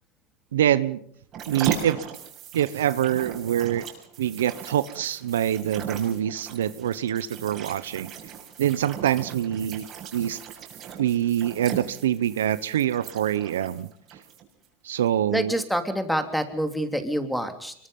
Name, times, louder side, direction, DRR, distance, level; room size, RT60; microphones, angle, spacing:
voice 1, 0.5-1.0 1.5-2.0 2.5-3.9 4.2-8.1 8.6-9.9 10.1-10.4 11.0-13.9 14.8-15.6, right 11 dB, 90° right, 16 dB, 1.0 m, -25 dB
sound 1, 1.3-14.7 15.1-15.2, right 8 dB, 45° right, 6.9 m, -38 dB
voice 2, 15.3-17.7, equal, ahead, 7 dB, 3.1 m, -27 dB
25.0 x 23.0 x 5.5 m, 0.65 s
hypercardioid pair, 105°, 0 cm